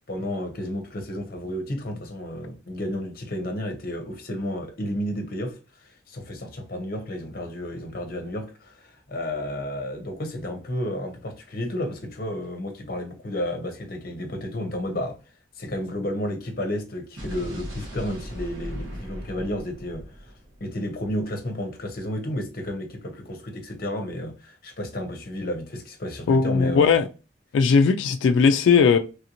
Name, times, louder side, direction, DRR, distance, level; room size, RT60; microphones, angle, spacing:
voice 1, 0.1-15.2 15.6-20.3 20.6-26.9, left 1 dB, 50° left, 0.7 m, -32 dB
Explosion, 17.2-21.2, equal, 90° right, 1.2 m, -38 dB
voice 2, 26.3-27.1 27.5-29.0, left 5 dB, 80° left, 0.3 m, -18 dB
3.1 x 2.5 x 2.9 m
head